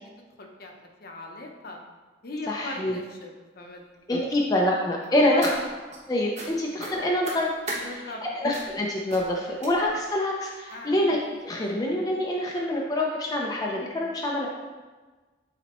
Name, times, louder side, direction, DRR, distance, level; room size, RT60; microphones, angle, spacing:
voice 1, 0.4-1.8 2.2-3.8 5.1-5.6 7.7-8.2 10.7-11.0, left 1 dB, 50° left, 2 dB, 0.8 m, -39 dB
voice 2, 2.5-3.0 4.1-5.5 6.1-7.5 8.3-11.2 11.4-14.5, left 1 dB, 20° left, -2 dB, 0.5 m, -25 dB
sound 1, 5.0-6.0 6.3-6.5 6.8-7.8 8.5-8.8 9.1-9.3 9.6-10.0 10.7-10.8 11.2-11.4 11.7-11.8, right 2 dB, 35° right, 1.2 m, -37 dB
8.9 x 4.1 x 3.0 m, 1.3 s
head